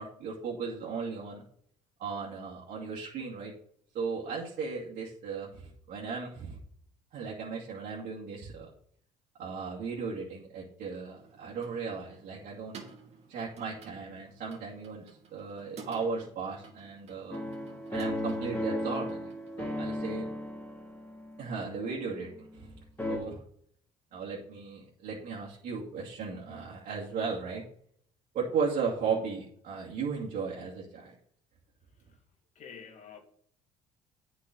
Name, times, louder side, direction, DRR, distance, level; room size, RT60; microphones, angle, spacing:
voice 1, 0.0-1.4 2.0-3.5 3.9-6.6 7.1-8.7 9.4-12.8 13.3-17.4 17.9-19.3 19.6-20.3 21.4-22.8 23.1-23.4 24.1-27.6 28.3-31.1, right 5 dB, 65° right, 2.5 m, -36 dB
sound 1, 11.2-19.9, right 5 dB, 45° right, 2.4 m, -53 dB
sound 2, 17.3-22.7 23.0-23.2, left 1 dB, 15° left, 3.3 m, -36 dB
voice 2, 32.6-33.2, left 7 dB, 55° left, 1.9 m, -48 dB
8.5 x 5.5 x 5.4 m
supercardioid pair, 85°, 15 cm